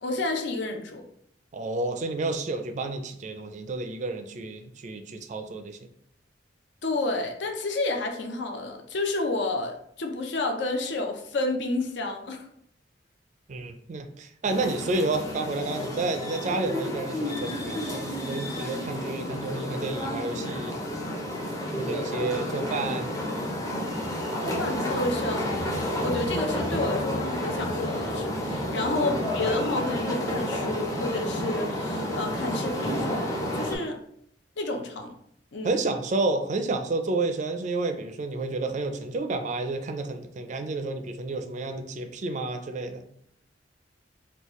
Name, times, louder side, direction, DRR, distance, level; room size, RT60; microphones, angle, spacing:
voice 1, 0.0-1.0 6.8-12.4 21.9-22.5 22.8-22.9 24.4-25.5 26.0-34.0 34.6-35.1 35.5-35.8, left 2 dB, 70° left, 4 dB, 0.5 m, -30 dB
voice 2, 1.5-5.9 13.5-20.8 21.8-23.1 29.2-29.5 35.6-43.0, right 2 dB, 40° right, 7 dB, 0.4 m, -30 dB
sound 1, 14.4-33.8, equal, 20° left, 0.6 m, -30 dB
3.9 x 2.3 x 3.0 m, 0.70 s
head